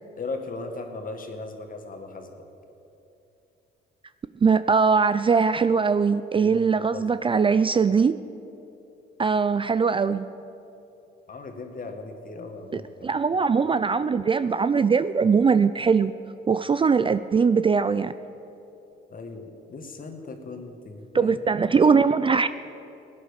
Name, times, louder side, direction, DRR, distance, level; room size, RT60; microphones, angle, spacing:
voice 1, 0.2-2.3 6.4-7.1 11.3-13.4 19.1-22.0, left 3 dB, 45° left, 5 dB, 1.9 m, -38 dB
voice 2, 4.4-8.1 9.2-10.3 12.7-16.1 16.5-18.1 21.1-22.5, right 5 dB, 25° right, 13 dB, 0.4 m, -21 dB
17.0 x 9.8 x 6.6 m, 2.8 s
cardioid pair, 90°, 20 cm